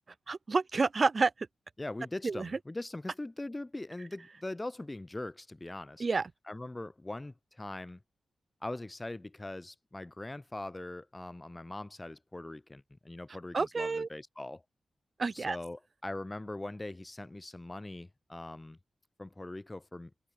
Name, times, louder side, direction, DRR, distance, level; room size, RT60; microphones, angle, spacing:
voice 1, 0.3-1.3 2.2-2.5 6.0-6.3 13.5-14.1 15.2-15.6, right 4 dB, 35° right, 4.2 m, -29 dB
voice 2, 1.8-6.1 6.5-8.0 8.6-14.6 15.3-18.8 19.2-20.1, left 2 dB, 15° left, 4.5 m, -41 dB
wide cardioid pair, 155°, 0 cm